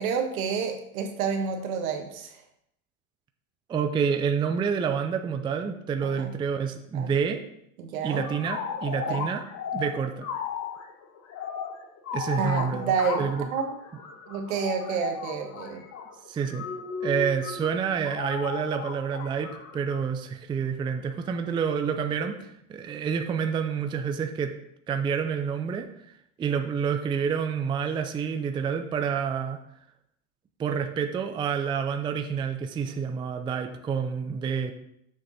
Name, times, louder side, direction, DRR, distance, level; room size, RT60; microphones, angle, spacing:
voice 1, 0.0-2.4 6.0-6.3 6.9-7.1 7.8-8.3 9.0-9.3 12.4-13.7 14.3-15.8, right 6 dB, 70° right, 5 dB, 1.5 m, -29 dB
voice 2, 3.7-7.4 8.0-9.4 9.7-10.3 12.1-13.5 16.2-16.6 17.0-24.5 24.9-25.9 26.4-29.6 30.6-34.7, right 6 dB, 10° right, 6 dB, 0.4 m, -28 dB
sound 1, 8.1-20.0, left 6 dB, 35° left, 1.4 m, -35 dB
6.8 x 6.3 x 4.2 m, 0.76 s
hypercardioid pair, 110°, 43 cm